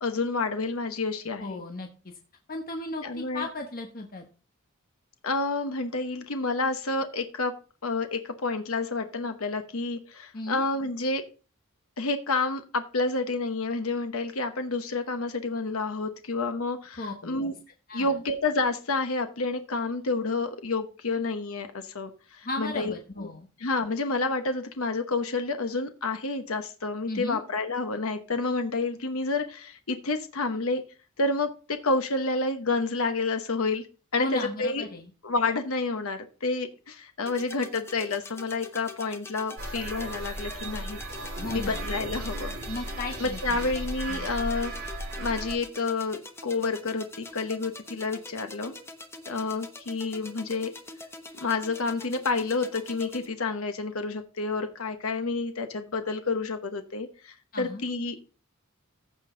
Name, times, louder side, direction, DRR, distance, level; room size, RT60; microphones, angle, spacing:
voice 1, 0.0-1.6 3.0-3.5 5.2-7.6 7.8-11.2 12.0-17.5 17.9-23.3 23.6-30.8 31.2-33.9 34.1-34.3 34.6-34.9 35.2-41.0 41.5-42.6 43.2-44.7 45.2-48.7 49.3-50.7 51.4-58.2, left 3 dB, 85° left, 7 dB, 1.0 m, -29 dB
voice 2, 1.4-2.1 2.5-4.3 10.3-10.6 17.0-17.5 17.9-18.2 22.4-23.5 27.1-27.4 34.2-35.1 41.4-41.9 42.7-43.7 44.1-44.3 57.5-57.9, left 2 dB, 45° left, 3 dB, 1.2 m, -36 dB
sound 1, 37.3-53.3, left 2 dB, 10° left, 1.0 m, -44 dB
sound 2, 39.6-45.6, right 1 dB, 55° right, 4.8 m, -35 dB
15.0 x 5.3 x 3.8 m, 0.35 s
head